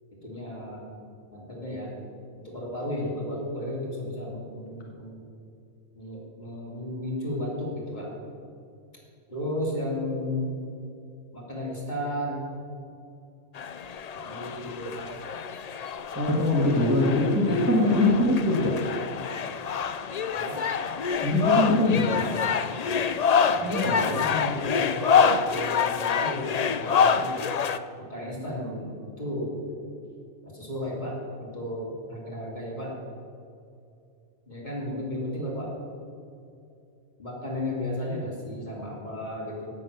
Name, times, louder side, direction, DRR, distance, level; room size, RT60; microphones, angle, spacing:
voice 1, 0.1-0.9 1.3-1.9 2.3-5.2 5.9-8.1 9.3-10.6 11.3-12.5 14.1-15.1 17.8-18.2 20.3-20.7 23.5-27.5 28.0-29.6 30.4-32.9 34.4-35.7 37.2-39.7, left 1 dB, 35° left, -4 dB, 3.3 m, -34 dB
sound 1, 13.5-27.8, left 6 dB, 60° left, 0.4 m, -26 dB
voice 2, 16.2-18.7 21.2-22.2 23.6-24.2, left 2 dB, 15° right, -3 dB, 1.8 m, -23 dB
16.5 x 7.2 x 6.8 m, 2.5 s
omnidirectional pair, 1.3 m